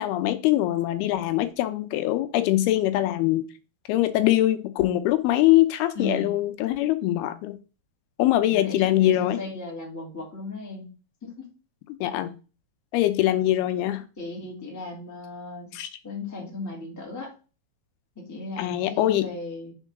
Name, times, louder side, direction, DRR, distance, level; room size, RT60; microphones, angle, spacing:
voice 1, 0.0-3.5 3.9-7.6 8.2-9.4 12.0-12.3 12.9-14.0 15.7-15.9 18.6-19.3, left 14 dB, 80° left, 2.6 m, -23 dB
voice 2, 5.9-6.3 8.5-10.8 11.2-11.5 14.2-15.7 16.0-17.3 18.1-19.7, left 2 dB, 10° left, 1.2 m, -36 dB
5.5 x 4.5 x 6.0 m
omnidirectional pair, 4.5 m